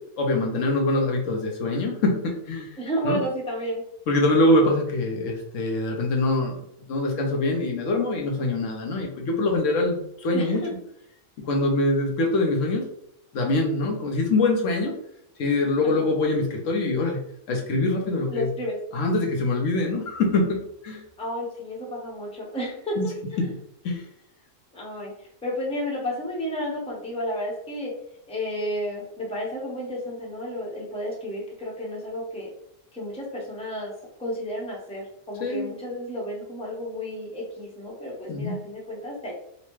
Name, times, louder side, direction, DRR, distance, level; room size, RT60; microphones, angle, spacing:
voice 1, 0.2-2.8 3.0-3.2 4.1-10.6 11.4-12.8 13.3-14.9 15.4-17.2 17.5-18.5 18.9-20.6 20.8-21.0 23.0-23.1 23.4-23.5 23.8-24.1 35.4-35.7 38.3-38.6, left 2 dB, 70° left, 1 dB, 1.0 m, -24 dB
voice 2, 2.8-3.8 10.3-10.7 15.8-16.1 18.3-18.8 21.2-23.0 23.3-23.5 24.7-25.1 25.4-27.9 28.3-32.5 32.9-33.9 34.2-39.3, equal, 5° left, -3 dB, 0.8 m, -32 dB
4.0 x 2.1 x 3.1 m, 0.76 s
omnidirectional pair, 1.4 m